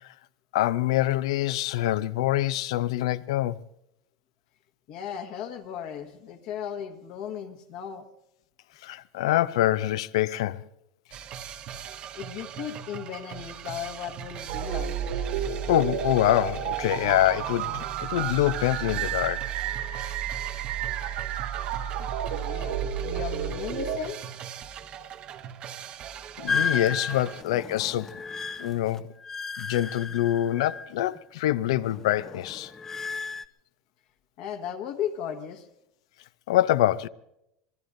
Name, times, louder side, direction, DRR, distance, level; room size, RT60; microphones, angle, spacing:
voice 1, 0.5-3.6 8.8-10.6 15.7-19.5 26.4-28.2 28.6-29.1 29.6-32.7 36.5-37.1, left 14 dB, 85° left, 0.5 m, -25 dB
voice 2, 4.9-8.0 12.1-14.9 22.0-24.2 34.4-35.7, left 9 dB, 55° left, 1.4 m, -36 dB
sound 1, 11.1-27.4, right 9 dB, 35° right, 0.8 m, -41 dB
sound 2, 14.5-24.0, right 9 dB, 80° right, 2.8 m, -31 dB
sound 3, 26.5-31.2 31.5-33.5, left 5 dB, 15° left, 0.5 m, -33 dB
25.5 x 20.5 x 2.6 m
supercardioid pair, 150°, 3 cm